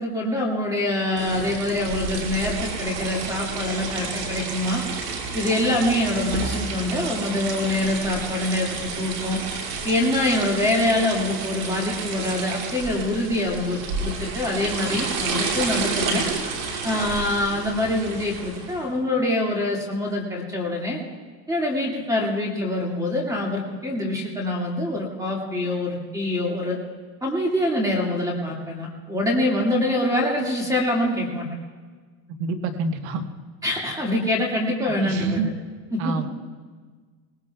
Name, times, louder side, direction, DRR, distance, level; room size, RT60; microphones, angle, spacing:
voice 1, 0.0-4.8 5.3-9.4 9.8-16.2 16.8-21.0 21.5-26.8 27.2-31.5 33.6-35.4 35.9-36.2, left 1 dB, 5° right, -1 dB, 2.1 m, -25 dB
sound 1, 1.2-18.9, right 4 dB, 85° right, 2.8 m, -30 dB
voice 2, 32.4-33.3 34.9-35.5 36.0-36.2, right 4 dB, 60° right, 7 dB, 1.4 m, -27 dB
21.5 x 18.5 x 2.3 m, 1.5 s
supercardioid pair, 150°, 48 cm